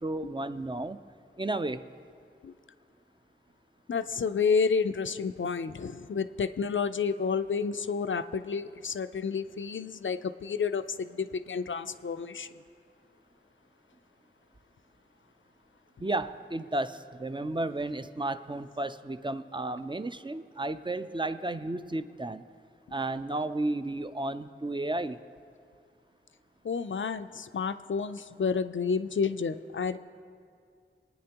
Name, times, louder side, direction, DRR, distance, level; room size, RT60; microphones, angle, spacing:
voice 1, 0.0-1.0 1.4-1.9 16.0-22.4 22.9-25.2, right 2 dB, 25° right, 11 dB, 0.4 m, -33 dB
voice 2, 3.9-12.5 26.6-30.0, left 5 dB, 70° left, 11 dB, 0.4 m, -30 dB
23.0 x 9.5 x 2.9 m, 2.3 s
wide cardioid pair, 45°, 21 cm